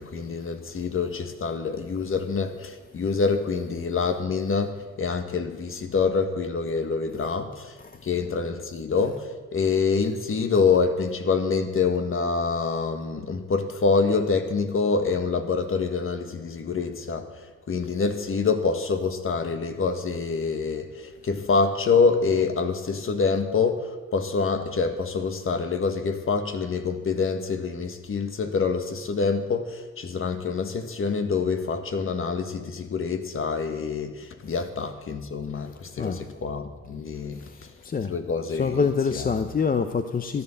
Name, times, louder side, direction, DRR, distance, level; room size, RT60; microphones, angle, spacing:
voice 1, 0.0-7.8 8.0-37.5 38.0-39.3, left 4 dB, 45° left, 1.6 m, -26 dB
voice 2, 37.4-38.2 38.5-40.4, left 5 dB, 30° left, 0.7 m, -26 dB
14.0 x 11.0 x 7.1 m
cardioid pair, 90°, 30 cm